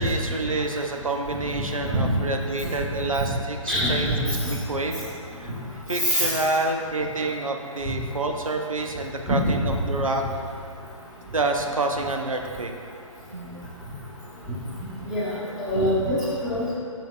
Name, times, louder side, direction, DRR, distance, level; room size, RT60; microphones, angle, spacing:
voice 1, 0.0-5.0 5.4-5.5 5.9-9.4 9.9-10.2 11.3-12.7 13.3-13.9, right 2 dB, 80° right, 3 dB, 0.6 m, -28 dB
voice 2, 3.7-4.1 4.4-4.5 6.0-6.3 9.3-9.4 15.0-15.3 15.6-16.8, equal, ahead, -13 dB, 1.4 m, -24 dB
7.5 x 5.3 x 2.5 m, 2.2 s
figure-of-eight pair, 135°, 17 cm